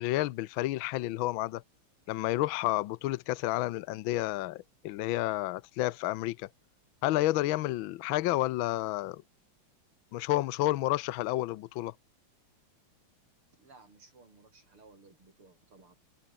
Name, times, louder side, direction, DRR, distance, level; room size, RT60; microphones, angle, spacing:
voice 1, 0.0-1.6 2.1-6.5 7.0-9.2 10.1-11.9, left 16 dB, 75° left, 1.4 m, -30 dB
voice 2, 13.6-15.9, right 3 dB, 90° right, 6.4 m, -58 dB
omnidirectional pair, 2.3 m